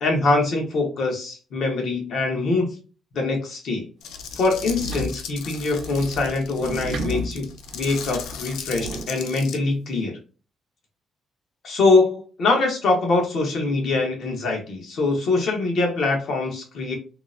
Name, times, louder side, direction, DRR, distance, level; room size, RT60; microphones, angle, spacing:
voice 1, 0.0-2.7 3.1-3.8 4.4-7.5 7.7-10.2 11.6-16.9, left 3 dB, 65° left, 1 dB, 1.0 m, -23 dB
sound 1, 4.0-9.6, left 7 dB, 85° left, 0.3 m, -37 dB
sound 2, 4.1-9.1, right 1 dB, 65° right, 0.5 m, -34 dB
2.8 x 2.0 x 2.4 m, 0.35 s
cardioid pair, 90°, 0 cm